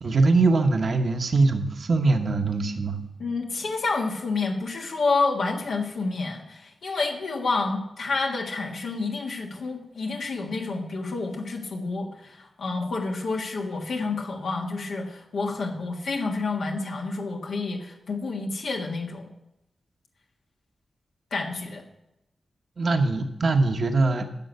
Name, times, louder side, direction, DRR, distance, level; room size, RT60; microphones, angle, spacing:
voice 1, 0.0-3.0 22.8-24.3, right 3 dB, 55° right, 5 dB, 1.0 m, -22 dB
voice 2, 3.2-19.3 21.3-21.8, left 3 dB, 85° left, 0 dB, 1.6 m, -29 dB
10.5 x 6.4 x 8.0 m, 0.87 s
cardioid pair, 80°, 0 cm